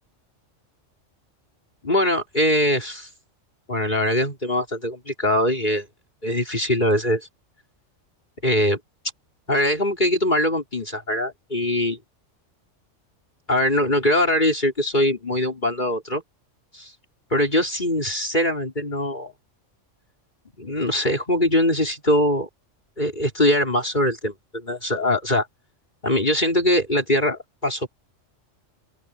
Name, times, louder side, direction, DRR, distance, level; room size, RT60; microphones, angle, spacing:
voice 1, 1.8-3.1 3.7-5.9 6.2-7.3 8.4-8.8 9.5-12.0 13.5-16.2 16.7-16.9 17.3-19.3 20.6-22.5 23.0-25.5 26.0-27.9, left 1 dB, 40° left, 4.6 m, -22 dB
open air
omnidirectional pair, 1.3 m